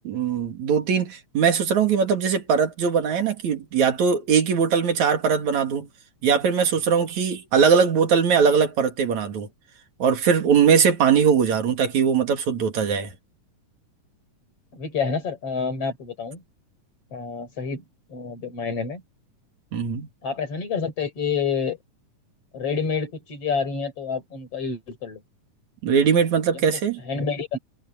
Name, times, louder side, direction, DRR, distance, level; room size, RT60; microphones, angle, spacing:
voice 1, 0.1-5.9 6.2-9.5 10.0-13.1 19.7-20.1 25.8-27.0, right 6 dB, 65° right, 3.7 m, -21 dB
voice 2, 14.7-16.4 17.1-17.8 18.1-19.0 20.2-21.8 22.5-25.2 26.5-27.6, left 5 dB, 50° left, 5.6 m, -28 dB
omnidirectional pair, 3.6 m